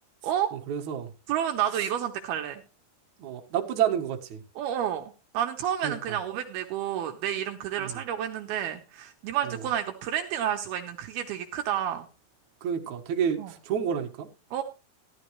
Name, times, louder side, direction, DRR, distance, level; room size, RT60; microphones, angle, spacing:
voice 1, 0.5-1.1 3.2-4.4 5.8-5.9 7.8-8.0 9.4-9.6 12.6-14.3, right 8 dB, 60° right, 3 dB, 2.3 m, -29 dB
voice 2, 1.3-2.6 4.6-12.1 13.4-13.5 14.5-14.6, right 10 dB, 75° right, 5 dB, 2.7 m, -30 dB
14.5 x 12.0 x 3.1 m, 0.30 s
omnidirectional pair, 4.9 m